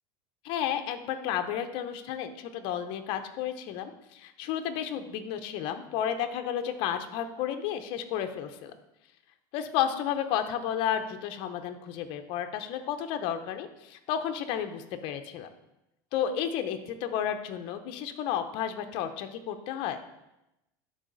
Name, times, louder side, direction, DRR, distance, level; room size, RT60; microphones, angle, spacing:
voice 1, 0.4-8.7 9.5-15.5 16.1-20.0, left 9 dB, 55° left, 7 dB, 0.8 m, -32 dB
11.5 x 4.0 x 4.0 m, 0.90 s
supercardioid pair, 145°, 11 cm